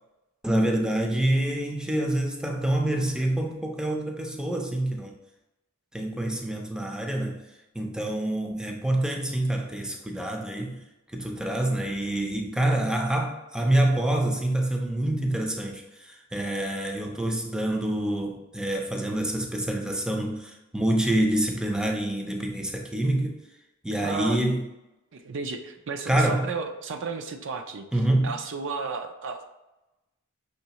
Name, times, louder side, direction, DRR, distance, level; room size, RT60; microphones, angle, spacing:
voice 1, 0.4-5.1 5.9-7.4 7.7-10.8 11.1-23.4 23.8-24.7 26.1-26.5 27.9-28.3, right 1 dB, 5° right, 1 dB, 0.4 m, -26 dB
voice 2, 24.0-24.5 25.1-27.9 28.2-29.4, right 4 dB, 60° right, 6 dB, 0.5 m, -33 dB
5.7 x 3.1 x 2.9 m, 0.99 s
head